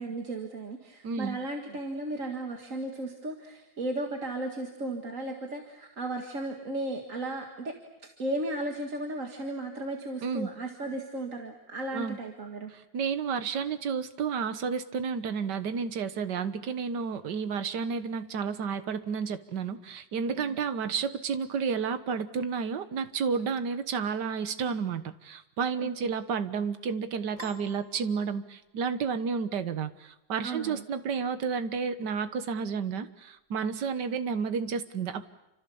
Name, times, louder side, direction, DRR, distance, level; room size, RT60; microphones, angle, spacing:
voice 1, 0.0-7.7 8.2-12.7 20.4-20.6 25.8-26.1 30.4-30.8, right 2 dB, 45° right, 3 dB, 2.2 m, -35 dB
voice 2, 1.0-1.4 10.2-10.5 11.9-12.2 12.7-35.3, right 6 dB, 65° right, 10 dB, 1.8 m, -31 dB
Piano, 27.4-28.9, left 2 dB, 85° left, 3.7 m, -49 dB
28.5 x 26.0 x 7.1 m, 0.93 s
omnidirectional pair, 2.0 m